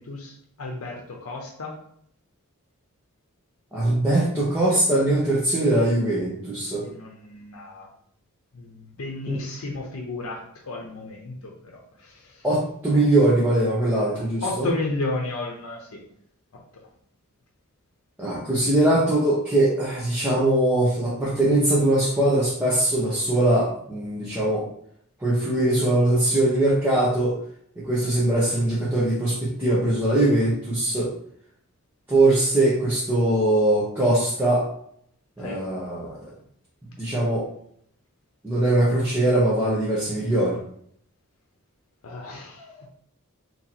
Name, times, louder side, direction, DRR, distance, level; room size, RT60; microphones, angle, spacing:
voice 1, 0.0-1.8 6.8-7.9 8.5-12.4 12.9-13.1 14.2-16.0 35.4-35.6 42.0-42.9, left 2 dB, 90° left, -1 dB, 0.7 m, -33 dB
voice 2, 3.7-6.8 9.3-9.4 12.4-14.7 18.2-24.6 25.2-27.3 27.8-31.1 32.1-34.6 35.4-36.1 37.0-37.4 38.4-40.6, right 1 dB, 10° right, -8 dB, 0.9 m, -21 dB
3.0 x 2.9 x 4.1 m, 0.66 s
head